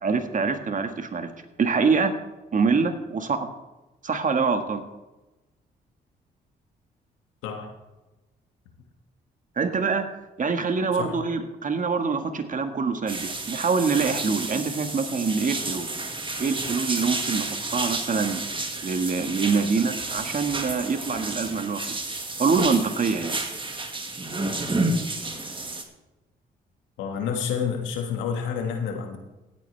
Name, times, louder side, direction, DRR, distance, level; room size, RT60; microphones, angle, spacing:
voice 1, 0.0-1.3 1.6-2.1 2.5-3.5 4.0-4.8 9.6-10.1 10.4-15.9 16.4-17.5 17.7-18.4 18.8-21.8 22.4-23.4, right 5 dB, 45° right, 7 dB, 1.6 m, -25 dB
sound 1, 13.1-25.8, right 2 dB, 25° right, 1.9 m, -31 dB
voice 2, 27.0-29.2, left 7 dB, 90° left, 4 dB, 1.8 m, -29 dB
16.5 x 9.0 x 3.4 m, 1.1 s
supercardioid pair, 60°, 19 cm